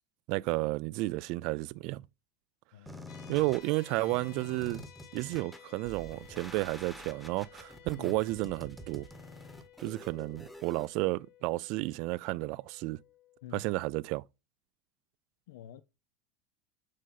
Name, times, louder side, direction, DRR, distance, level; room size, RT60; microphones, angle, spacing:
voice 1, 0.3-2.0 3.3-4.8 5.1-9.1 9.8-13.0 13.5-14.2, right 22 dB, 55° right, 0.3 m, -32 dB
voice 2, 2.7-3.5 8.0-8.2 13.4-13.7 15.5-15.8, left 10 dB, 80° left, 0.5 m, -48 dB
sound 1, 2.9-10.9, equal, ahead, 1.0 m, -48 dB
sound 2, 3.1-14.2, left 11 dB, 60° left, 1.5 m, -57 dB
6.3 x 5.5 x 3.9 m
supercardioid pair, 135°, 0 cm